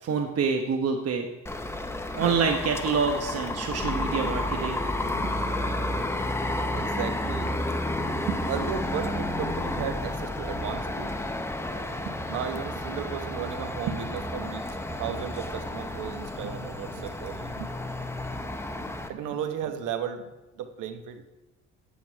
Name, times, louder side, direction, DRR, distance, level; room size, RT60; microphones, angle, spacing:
voice 1, 0.0-1.3 2.1-4.9, right 5 dB, 55° right, 3 dB, 1.0 m, -26 dB
sound 1, 1.5-19.1, left 1 dB, 10° left, 0.8 m, -31 dB
voice 2, 6.7-7.5 8.2-11.2 12.0-17.7 19.1-20.2 20.6-21.2, right 8 dB, 90° right, 8 dB, 1.0 m, -34 dB
9.3 x 8.4 x 4.6 m, 1.1 s
cardioid pair, 90°, 30 cm